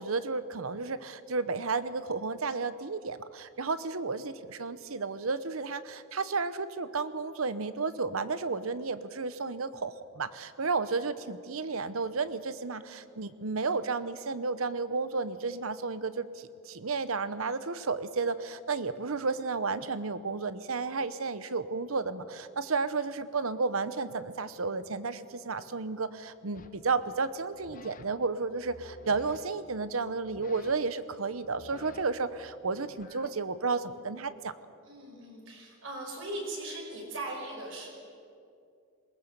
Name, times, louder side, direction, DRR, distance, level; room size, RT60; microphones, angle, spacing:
voice 1, 0.0-34.5, right 4 dB, 90° right, 14 dB, 0.9 m, -32 dB
sound 1, 26.5-26.8 27.5-28.1 28.5-29.4 30.2-31.0 31.4-33.3, left 3 dB, 40° left, 1.0 m, -52 dB
voice 2, 34.8-37.9, right 1 dB, 65° right, -1 dB, 5.8 m, -39 dB
21.5 x 19.5 x 6.9 m, 2.5 s
head